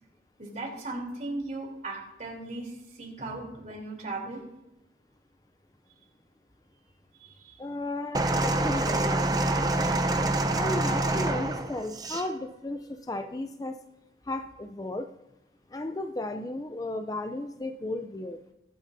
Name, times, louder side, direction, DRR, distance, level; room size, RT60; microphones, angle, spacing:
voice 1, 0.4-4.4 7.2-7.6, right 2 dB, 40° right, -2 dB, 3.3 m, -37 dB
voice 2, 7.6-9.7 10.5-13.8 14.2-15.1 15.7-18.4, left 2 dB, 20° left, 8 dB, 0.4 m, -34 dB
sound 1, 8.1-12.3 13.2-13.3, right 2 dB, 20° right, 0.6 m, -26 dB
21.5 x 8.6 x 2.7 m, 0.94 s
head